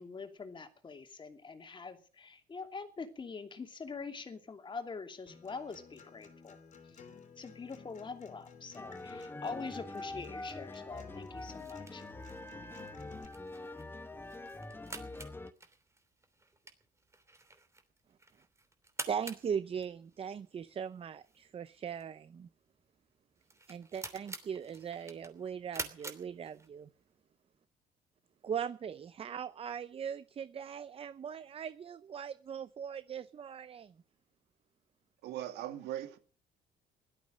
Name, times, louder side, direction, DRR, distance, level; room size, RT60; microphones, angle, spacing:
voice 1, 0.0-6.6 7.4-12.0, left 4 dB, 30° left, 2.7 m, -44 dB
Acoustic guitar, 5.3-13.3, left 5 dB, 45° left, 3.0 m, -55 dB
sound 1, 8.8-15.5, left 2 dB, 10° left, 1.1 m, -45 dB
sound 2, 11.4-27.0, right 2 dB, 15° right, 3.0 m, -49 dB
voice 2, 19.1-22.5 23.7-26.9 28.4-33.9, right 7 dB, 35° right, 0.7 m, -39 dB
voice 3, 35.2-36.2, right 12 dB, 85° right, 2.4 m, -39 dB
16.5 x 12.5 x 6.5 m
cardioid pair, 110°, 17 cm